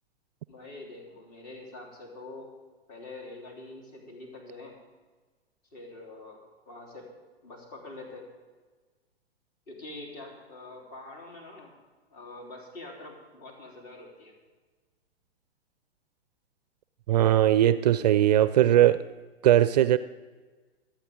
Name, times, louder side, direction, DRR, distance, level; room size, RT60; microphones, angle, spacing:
voice 1, 0.5-2.5 2.9-4.7 5.7-7.1 7.4-8.3 9.7-11.7 12.1-14.3, left 2 dB, 45° left, 3.7 m, -45 dB
voice 2, 17.1-19.0 19.4-20.0, right 12 dB, 40° right, 0.4 m, -20 dB
26.0 x 9.0 x 3.7 m
figure-of-eight pair, 105°, 32 cm